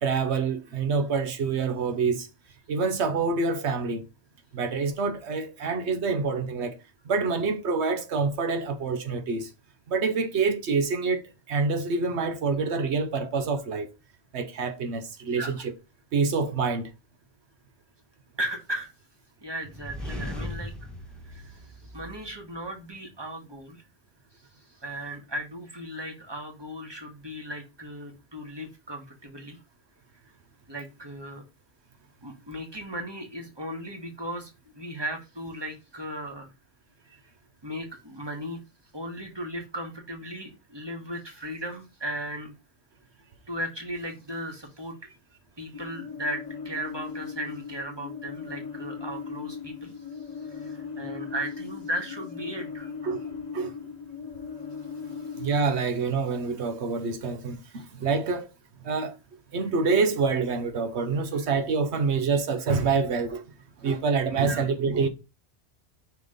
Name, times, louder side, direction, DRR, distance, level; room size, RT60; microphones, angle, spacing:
voice 1, 0.0-2.3 2.7-4.0 4.5-6.8 7.1-9.5 9.9-13.9 14.3-15.7 16.1-16.9 53.0-53.2 53.5-53.7 55.4-58.5 58.8-59.2 59.5-63.4 63.8-65.1, right 4 dB, 85° right, 1.2 m, -26 dB
voice 2, 15.3-15.7 18.4-18.9 19.4-20.7 21.2-23.8 24.3-29.6 30.7-31.4 32.2-36.5 37.6-38.6 38.9-42.5 43.5-44.9 45.6-52.9 59.5-59.7 64.4-64.7, right 1 dB, 25° right, 1.8 m, -36 dB
sound 1, 19.6-22.6, left 1 dB, ahead, 1.4 m, -38 dB
sound 2, 45.7-55.6, left 6 dB, 40° left, 1.3 m, -38 dB
5.8 x 3.8 x 5.0 m
omnidirectional pair, 1.1 m